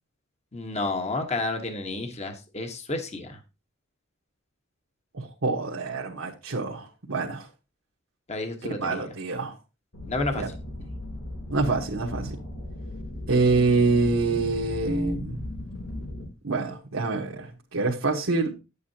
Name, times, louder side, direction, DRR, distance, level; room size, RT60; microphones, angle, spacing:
voice 1, 0.5-3.4 8.3-9.1 10.0-10.4, left 2 dB, 35° left, 1.3 m, -31 dB
voice 2, 5.1-7.5 8.8-9.6 10.3-10.5 11.5-12.4 13.3-15.4 16.4-18.5, right 3 dB, 80° right, 1.4 m, -26 dB
sound 1, 9.9-16.2, left 1 dB, 90° left, 3.3 m, -37 dB
10.5 x 8.4 x 2.9 m
head